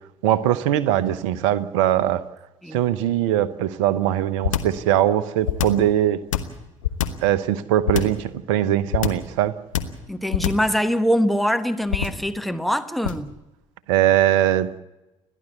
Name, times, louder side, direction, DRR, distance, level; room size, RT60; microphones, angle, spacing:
voice 1, 0.2-2.2 2.7-6.2 7.2-9.6 13.9-14.7, right 12 dB, 65° right, 0.9 m, -21 dB
sound 1, 4.4-4.8 5.4-5.9 6.3-7.3 7.9-8.2 8.9-9.3 9.7-10.0 10.3-10.7 11.9-12.3 13.0-13.3, left 10 dB, 75° left, 1.1 m, -24 dB
voice 2, 10.1-13.3, equal, ahead, 1.2 m, -23 dB
30.0 x 11.0 x 8.0 m
figure-of-eight pair, 50°, 17 cm